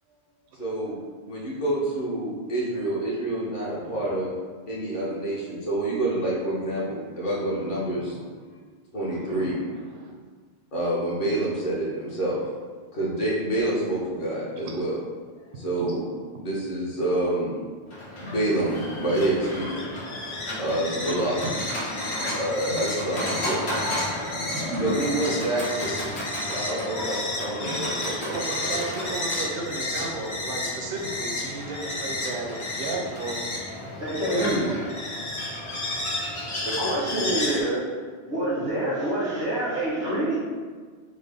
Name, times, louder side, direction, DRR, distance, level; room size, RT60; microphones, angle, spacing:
voice 1, 0.6-1.0 1.3-4.3 4.7-8.2 8.9-9.6 10.7-12.4 12.9-15.0 15.6-16.0 16.4-17.6 18.1-21.4 22.3-23.9 24.8-26.2 26.5-29.1 36.2-36.7, right 1 dB, 55° left, -6 dB, 1.0 m, -28 dB
voice 2, 9.0-10.1 14.5-14.8 15.5-15.6 21.1-21.5 22.7-22.8 24.7-24.9 27.6-27.8 28.3-33.4 34.3-34.5, right 3 dB, 65° right, 0 dB, 0.7 m, -35 dB
Livestock farm animals working animals, 17.9-35.9, equal, 80° left, 1.1 m, -35 dB
sound 1, 17.9-37.6, left 2 dB, 40° left, 0.5 m, -32 dB
voice 3, 34.0-34.7 36.6-37.9 38.3-40.3, right 1 dB, 90° right, -14 dB, 1.4 m, -26 dB
3.7 x 2.1 x 3.3 m, 1.5 s
omnidirectional pair, 1.1 m